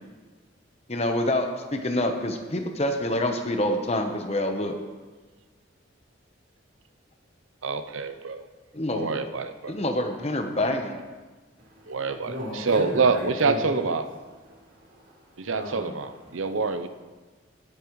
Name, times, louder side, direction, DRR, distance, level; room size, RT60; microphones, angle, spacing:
voice 1, 0.9-4.7 8.7-9.1 9.7-11.0, left 1 dB, 30° left, 4 dB, 1.0 m, -26 dB
voice 2, 7.6-8.5 8.9-9.7 11.9-14.0 15.4-16.9, right 4 dB, 85° right, 10 dB, 0.7 m, -26 dB
voice 3, 11.6-13.9 14.4-16.8, equal, 65° right, -8 dB, 3.8 m, -37 dB
18.5 x 8.6 x 3.2 m, 1.4 s
head